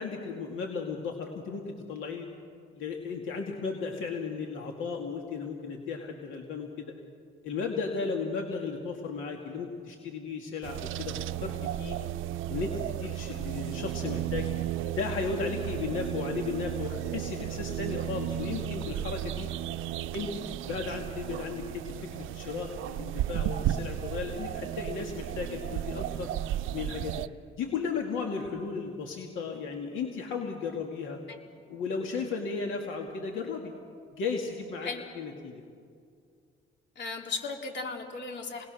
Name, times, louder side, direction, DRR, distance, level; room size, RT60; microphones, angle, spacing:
voice 1, 0.0-2.3 2.7-6.9 7.4-11.1 11.4-12.0 12.5-14.5 15.0-19.5 20.1-21.8 22.1-26.3 26.7-27.2 27.6-31.2 31.7-33.7 34.1-35.6, left 5 dB, 85° left, 2 dB, 2.3 m, -35 dB
sound 1, 10.6-27.3, right 12 dB, 85° right, 0.6 m, -34 dB
voice 2, 37.0-38.7, left 4 dB, 65° left, 2 dB, 3.5 m, -36 dB
29.5 x 21.0 x 6.4 m, 2.2 s
cardioid pair, 90°, 20 cm